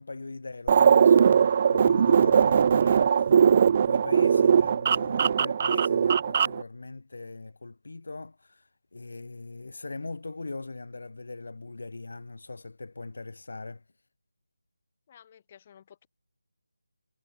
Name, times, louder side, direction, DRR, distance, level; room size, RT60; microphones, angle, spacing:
voice 1, 0.0-13.8, left 3 dB, 60° left, 1.9 m, -40 dB
sound 1, 0.7-6.6, right 7 dB, 30° right, 0.3 m, -20 dB
voice 2, 15.1-16.1, left 9 dB, 25° left, 4.4 m, -54 dB
figure-of-eight pair, 160°, 0 cm